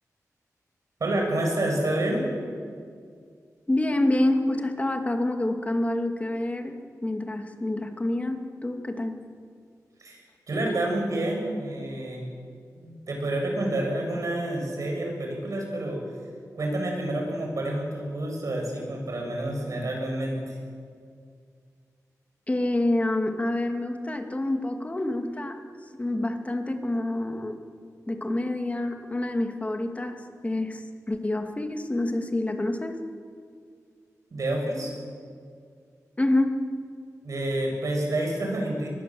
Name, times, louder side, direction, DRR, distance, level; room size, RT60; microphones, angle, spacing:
voice 1, 1.0-2.3 10.0-12.2 12.8-16.0 16.6-20.6 34.3-34.9 37.2-38.9, right 1 dB, 65° right, 1 dB, 7.7 m, -28 dB
voice 2, 3.7-6.7 7.0-9.2 22.5-25.6 25.9-27.6 28.1-33.0 36.2-36.6, left 1 dB, 25° left, 5 dB, 2.5 m, -27 dB
25.0 x 21.5 x 7.9 m, 2.2 s
wide cardioid pair, 90°, 6 cm